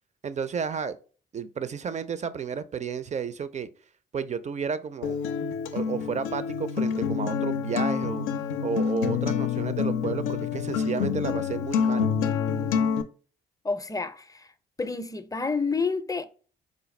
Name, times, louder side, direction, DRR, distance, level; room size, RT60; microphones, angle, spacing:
voice 1, 0.2-1.0 1.3-3.7 4.1-5.2 5.7-8.2 8.6-12.1, right 6 dB, 35° right, 0.5 m, -32 dB
Acoustic guitar, 5.0-13.0, left 7 dB, 85° left, 0.4 m, -27 dB
voice 2, 13.6-14.5 14.8-16.3, left 4 dB, 15° left, 0.5 m, -29 dB
5.0 x 2.2 x 3.1 m
supercardioid pair, 55°, 20 cm